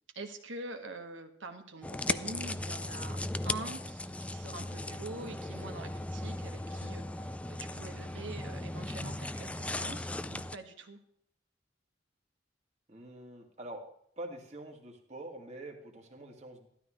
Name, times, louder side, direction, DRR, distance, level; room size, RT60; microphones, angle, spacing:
voice 1, 0.2-3.2 3.4-11.0, right 2 dB, 90° right, 5 dB, 1.7 m, -45 dB
sound 1, 1.8-10.6, left 2 dB, 5° left, 0.3 m, -37 dB
voice 2, 12.9-13.8 14.2-16.7, right 1 dB, 35° right, 2 dB, 2.1 m, -45 dB
13.0 x 12.5 x 3.2 m, 0.69 s
head